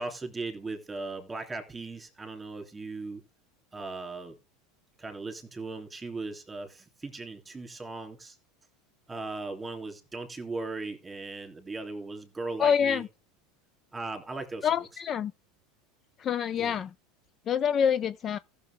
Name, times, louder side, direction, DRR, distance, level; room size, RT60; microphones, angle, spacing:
voice 1, 0.0-3.2 3.7-4.4 5.0-8.4 9.1-13.0 13.9-14.9 16.6-16.8, right 3 dB, 10° right, 3.0 m, -38 dB
voice 2, 12.6-13.1 14.6-15.3 16.2-16.9 17.5-18.4, left 8 dB, 30° left, 0.5 m, -26 dB
14.5 x 6.9 x 3.5 m
supercardioid pair, 135°, 0 cm